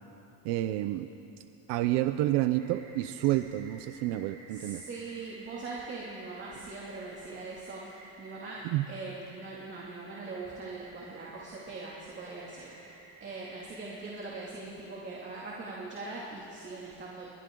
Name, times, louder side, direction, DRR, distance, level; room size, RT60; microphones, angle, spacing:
voice 1, 0.4-1.1 1.7-4.8 8.6-8.8, right 15 dB, 75° right, 10 dB, 0.8 m, -29 dB
sound 1, 2.5-14.2, right 2 dB, 50° right, 5.7 m, -54 dB
voice 2, 4.5-17.3, right 3 dB, 25° right, -4 dB, 2.6 m, -41 dB
30.0 x 23.5 x 3.9 m, 2.9 s
cardioid pair, 175°, 41 cm